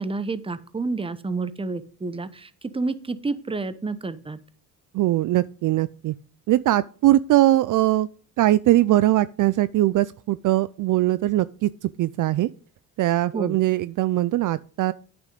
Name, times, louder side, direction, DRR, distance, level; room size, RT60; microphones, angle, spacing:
voice 1, 0.0-4.4 13.3-13.6, right 3 dB, 15° right, 0.8 m, -29 dB
voice 2, 4.9-6.1 6.5-8.1 8.4-12.5 13.0-14.9, right 15 dB, 55° right, 0.4 m, -21 dB
9.0 x 6.2 x 5.2 m
supercardioid pair, 80°, 38 cm